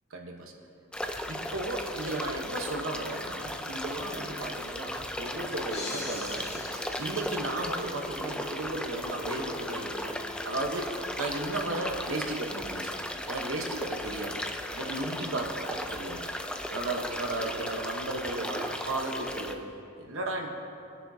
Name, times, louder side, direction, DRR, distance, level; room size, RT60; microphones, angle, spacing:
voice 1, 0.1-0.5 1.3-10.2 10.4-13.0 13.2-14.4 14.7-16.3 16.7-19.6 20.0-20.5, right 2 dB, 65° right, 2 dB, 1.1 m, -35 dB
sound 1, 0.9-19.5, left 1 dB, 5° left, 0.4 m, -36 dB
sound 2, 5.7-8.0, left 2 dB, 45° left, 2.4 m, -42 dB
sound 3, 6.7-11.0, left 2 dB, 35° right, 2.6 m, -48 dB
20.0 x 10.0 x 2.8 m, 2.6 s
head